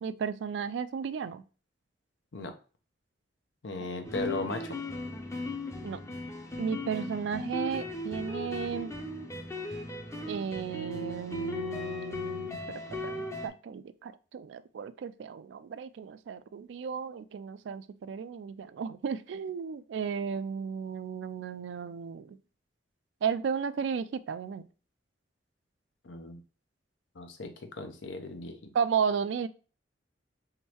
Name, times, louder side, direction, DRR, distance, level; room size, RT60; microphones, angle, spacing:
voice 1, 0.0-1.4 5.8-6.0 6.6-8.9 10.3-12.6 12.9-22.4 23.2-24.6 28.7-29.5, right 6 dB, 75° right, 14 dB, 0.3 m, -34 dB
voice 2, 3.6-4.8 26.0-26.4 27.2-28.7, left 3 dB, 90° left, 6 dB, 0.7 m, -37 dB
sound 1, 4.0-13.5, left 1 dB, 15° left, 0.5 m, -37 dB
3.6 x 3.0 x 2.9 m, 0.36 s
head